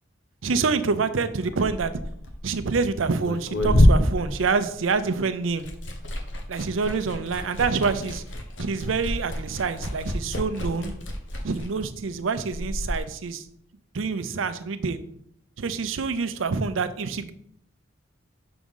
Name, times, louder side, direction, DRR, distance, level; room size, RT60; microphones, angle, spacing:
voice 1, 0.4-1.9 2.4-5.7 6.5-8.2 8.6-10.9 11.4-13.4 13.9-15.0 15.6-17.3, right 4 dB, 80° right, 11 dB, 0.6 m, -26 dB
Liquid, 1.4-5.1 5.4-13.0, left 1 dB, 65° left, 1.0 m, -27 dB
6.0 x 3.8 x 5.4 m, 0.69 s
head